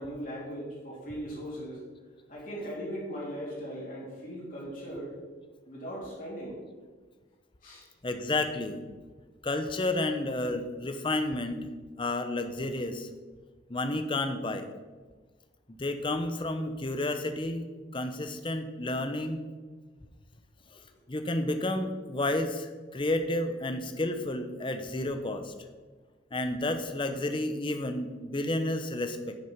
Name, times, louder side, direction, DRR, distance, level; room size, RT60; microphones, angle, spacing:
voice 1, 0.0-1.8 2.3-5.2 5.7-6.6 7.6-7.9, equal, 45° left, -6 dB, 3.5 m, -38 dB
voice 2, 8.0-8.8 9.4-11.6 12.0-13.1 13.7-14.7 15.7-19.4 20.7-20.8 21.1-25.5 26.3-29.4, left 2 dB, 25° left, 8 dB, 0.8 m, -31 dB
10.5 x 6.4 x 5.6 m, 1.4 s
head